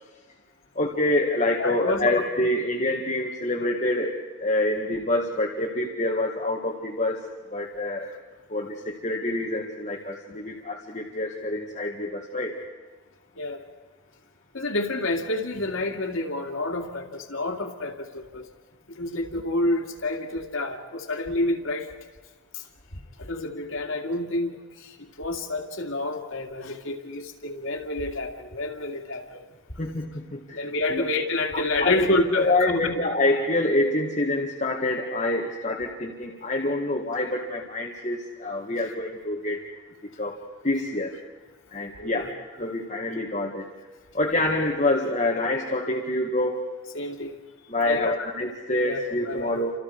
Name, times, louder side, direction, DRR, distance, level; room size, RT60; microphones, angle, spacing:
voice 1, 0.8-4.1 4.4-7.2 7.5-8.1 8.5-12.5 29.8-30.6 30.9-31.1 31.5-39.6 40.2-40.4 40.6-41.1 41.7-43.7 44.1-46.6 47.7-49.7, left 1 dB, 35° left, -1 dB, 2.0 m, -26 dB
voice 2, 1.6-2.1 13.4-13.6 14.5-18.5 18.9-21.9 22.5-22.7 23.2-29.4 30.5-32.9 42.0-42.3 46.9-47.4 47.8-48.3 48.8-49.5, left 2 dB, 85° left, 3 dB, 2.5 m, -29 dB
30.0 x 27.0 x 4.9 m, 1.2 s
head